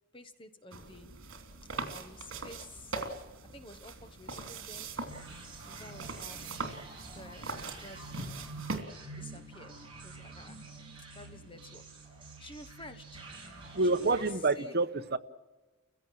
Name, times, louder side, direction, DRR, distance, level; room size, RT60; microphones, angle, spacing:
voice 1, 0.1-1.1 1.9-3.0 3.5-4.9 5.6-6.5 7.1-8.0 9.1-10.7 11.1-12.0 12.4-13.2 13.8-14.3 14.6-14.8, left 1 dB, 25° left, 8 dB, 1.3 m, -51 dB
sound 1, 0.7-8.8, right 3 dB, 70° right, 3.0 m, -41 dB
sound 2, 5.1-14.3, right 3 dB, 25° right, 6.2 m, -48 dB
voice 2, 13.7-15.2, right 3 dB, 50° right, 7 dB, 1.0 m, -28 dB
30.0 x 16.5 x 7.7 m, 1.2 s
head